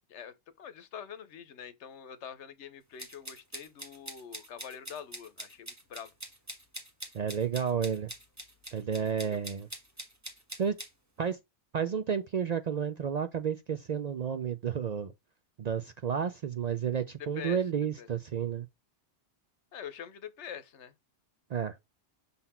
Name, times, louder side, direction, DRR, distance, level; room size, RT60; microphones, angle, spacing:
voice 1, 0.1-6.1 9.3-9.4 17.3-17.6 18.0-18.1 19.7-20.9, left 8 dB, 85° left, 1.1 m, -45 dB
sound 1, 3.0-10.9, right 1 dB, 15° right, 1.3 m, -44 dB
voice 2, 7.1-8.1 8.7-9.7 10.6-10.8 11.2-11.4 11.7-15.1 15.6-18.7 21.5-21.8, right 7 dB, 55° right, 0.4 m, -31 dB
5.7 x 4.0 x 4.2 m
omnidirectional pair, 1.2 m